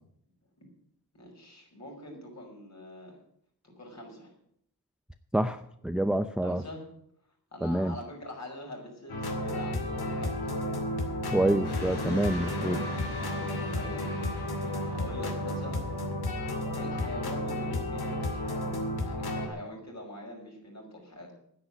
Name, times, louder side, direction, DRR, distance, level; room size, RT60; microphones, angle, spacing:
voice 1, 1.1-3.1 3.6-4.3 6.4-6.8 7.5-10.4 13.7-15.9 16.8-18.6 19.0-21.3, left 1 dB, 45° left, 0 dB, 5.6 m, -44 dB
voice 2, 5.3-6.6 7.6-8.0 11.3-12.8, right 1 dB, ahead, 10 dB, 0.6 m, -27 dB
sound 1, 9.1-19.5, left 1 dB, 70° left, 2.5 m, -32 dB
sound 2, 11.6-16.1, left 2 dB, 90° left, 4.1 m, -43 dB
10.0 x 8.6 x 9.9 m, 0.72 s
cardioid pair, 80°, 38 cm